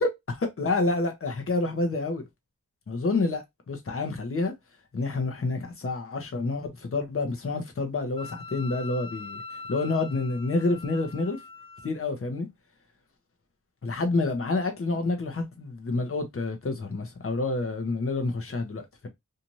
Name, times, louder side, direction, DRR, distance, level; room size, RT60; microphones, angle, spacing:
voice 1, 0.0-2.2 2.9-4.5 4.9-9.4 9.7-11.4 11.8-12.5 13.8-19.1, left 3 dB, 40° left, 0.8 m, -28 dB
Wind instrument woodwind instrument, 8.2-11.9, left 3 dB, 15° left, 0.4 m, -42 dB
2.7 x 2.5 x 2.9 m
wide cardioid pair, 105°, 32 cm